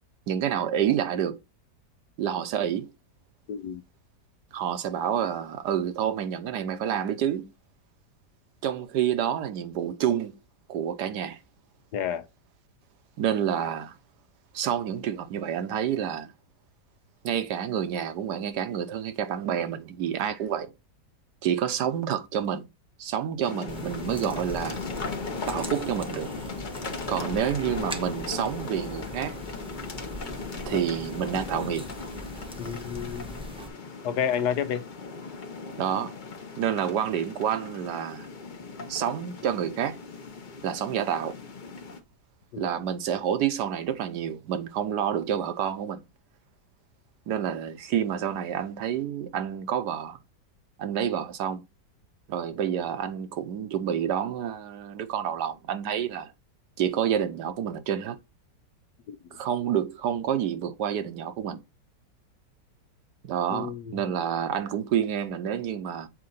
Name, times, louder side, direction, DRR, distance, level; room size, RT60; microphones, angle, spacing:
voice 1, 0.3-1.4 2.2-2.9 4.5-7.5 8.6-10.4 10.7-11.4 13.2-14.0 14.5-16.3 17.2-20.7 21.4-22.7 23.0-24.8 25.5-26.3 27.1-29.4 30.7-31.8 35.8-36.1 36.6-38.3 38.9-40.0 40.6-41.4 42.6-46.0 47.3-50.2 50.8-51.6 52.3-56.3 56.8-58.2 59.3-61.6 63.2-66.1, right 9 dB, 75° right, 1.3 m, -28 dB
voice 2, 3.5-3.8 11.9-12.3 32.6-33.3 34.0-34.8 42.5-42.7 59.1-59.2 63.5-63.9, left 8 dB, 70° left, 1.3 m, -30 dB
sound 1, 23.4-42.0, left 4 dB, 40° left, 0.7 m, -38 dB
sound 2, 23.7-33.7, equal, 5° right, 0.5 m, -41 dB
7.6 x 4.1 x 4.0 m
omnidirectional pair, 1.9 m